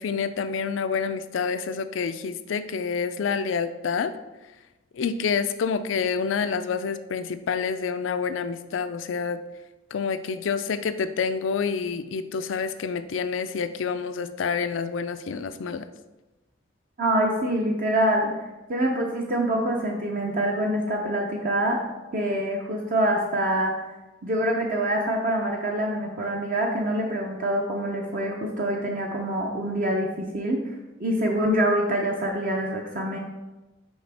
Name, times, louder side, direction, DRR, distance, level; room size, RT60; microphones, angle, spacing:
voice 1, 0.0-4.1 4.9-9.4 9.9-15.9, left 5 dB, 85° left, 11 dB, 0.4 m, -28 dB
voice 2, 17.0-18.3 18.7-21.9 22.1-23.7 24.2-30.6 31.0-33.2, right 1 dB, 45° right, 0 dB, 0.6 m, -25 dB
6.3 x 5.0 x 3.5 m, 1.1 s
head